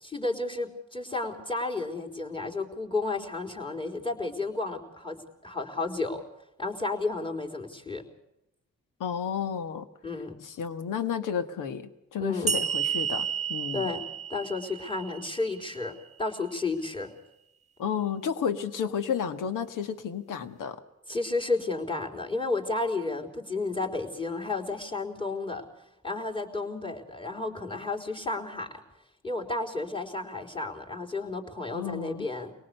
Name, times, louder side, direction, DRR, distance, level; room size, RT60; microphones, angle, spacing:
voice 1, 0.0-6.2 6.6-8.0 10.0-10.4 12.2-12.5 13.7-17.1 21.1-25.7 26.0-28.8 29.2-32.5, left 3 dB, 15° left, 1 dB, 4.3 m, -32 dB
voice 2, 9.0-9.9 10.4-13.9 17.8-20.8 31.7-32.3, left 7 dB, 85° left, 10 dB, 1.6 m, -32 dB
sound 1, 12.5-15.8, right 7 dB, 20° right, 1.0 m, -31 dB
24.5 x 18.5 x 6.7 m, 0.84 s
cardioid pair, 60°, 31 cm